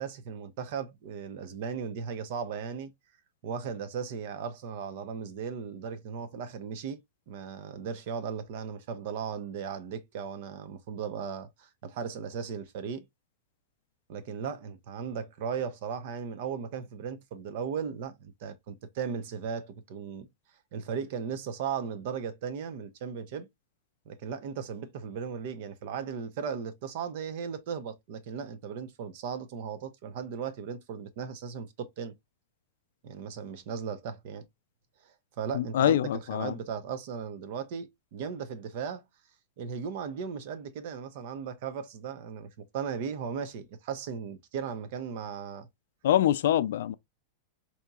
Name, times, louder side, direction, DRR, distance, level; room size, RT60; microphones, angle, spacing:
voice 1, 0.0-2.9 3.4-13.0 14.1-20.3 20.7-23.5 24.1-32.1 33.0-34.4 35.0-39.0 39.6-45.7, right 6 dB, 55° right, 0.8 m, -37 dB
voice 2, 35.5-36.5 46.0-47.0, left 11 dB, 75° left, 0.4 m, -25 dB
4.3 x 2.8 x 2.3 m
supercardioid pair, 155°, 0 cm